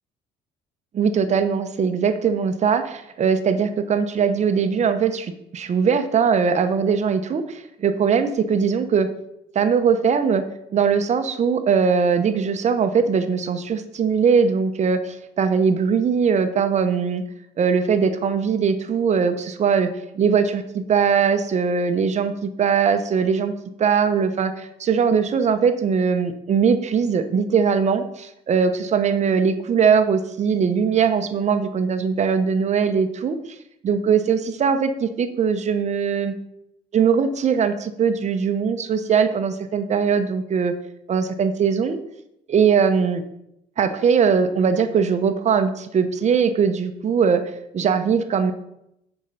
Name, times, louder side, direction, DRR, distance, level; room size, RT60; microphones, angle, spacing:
voice 1, 0.9-9.1 9.5-10.4 10.7-17.2 17.6-23.5 23.8-33.4 33.8-36.3 36.9-40.7 41.1-42.0 42.5-43.2 43.8-47.4 47.7-48.5, right 6 dB, 45° right, 9 dB, 0.9 m, -20 dB
11.0 x 4.6 x 5.4 m, 0.81 s
cardioid pair, 110°, 17 cm